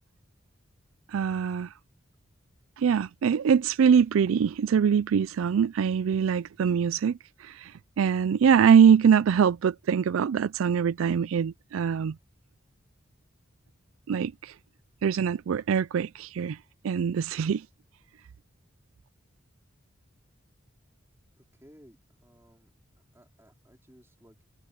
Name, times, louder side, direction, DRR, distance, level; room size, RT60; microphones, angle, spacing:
voice 1, 1.1-1.7 2.8-12.2 14.1-14.5 15.0-16.6 16.8-17.7, right 7 dB, 80° right, 0.4 m, -23 dB
voice 2, 21.4-22.7 23.1-24.4, equal, 10° right, 3.7 m, -57 dB
head